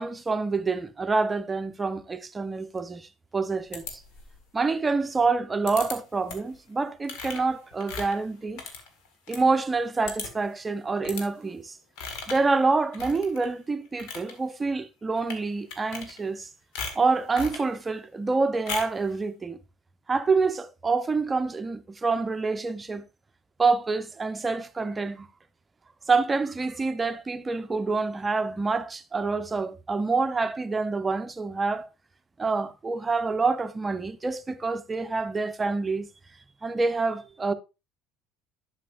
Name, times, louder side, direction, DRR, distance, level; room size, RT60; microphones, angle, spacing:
voice 1, 0.0-4.0 4.5-8.6 9.3-11.8 12.3-16.5 16.9-19.6 20.1-23.0 23.6-25.3 26.1-31.9 32.4-36.1 36.6-37.5, right 4 dB, 20° right, 0.7 m, -27 dB
sound 1, 3.7-4.4 5.7-6.0 6.3-6.6 7.0-9.4 9.7-9.8 10.0-10.5 11.0-11.3 12.0-12.5 12.9-13.5 13.8-14.3 15.2-15.4 15.7-16.4 16.7-17.7 18.7-19.0, left 5 dB, 60° left, 1.7 m, -37 dB
11.0 x 6.5 x 2.5 m
figure-of-eight pair, 65°, 0 cm